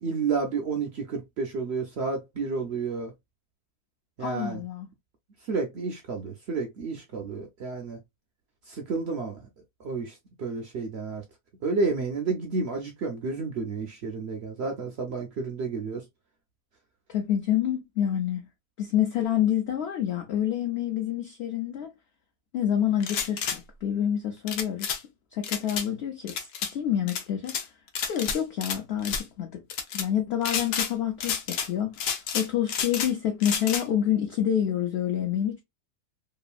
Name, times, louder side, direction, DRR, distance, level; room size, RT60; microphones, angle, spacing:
voice 1, 0.0-3.1 4.2-4.6 5.4-8.0 8.7-9.5 9.8-11.2 11.6-16.0, right 4 dB, 70° right, 0.6 m, -31 dB
voice 2, 4.2-4.9 17.1-18.4 18.8-21.9 22.5-24.9 25.3-27.7 28.1-29.6 29.9-35.6, left 10 dB, 60° left, 0.6 m, -28 dB
sound 1, 23.0-23.6 24.5-25.0 25.4-25.9 26.3-26.7 27.1-27.6 28.0-28.8 29.0-29.2 29.7-30.1 30.4-30.9 31.2-31.7 32.0-33.1 33.4-33.8, left 7 dB, 85° left, 1.2 m, -30 dB
3.0 x 2.5 x 2.3 m
omnidirectional pair, 1.6 m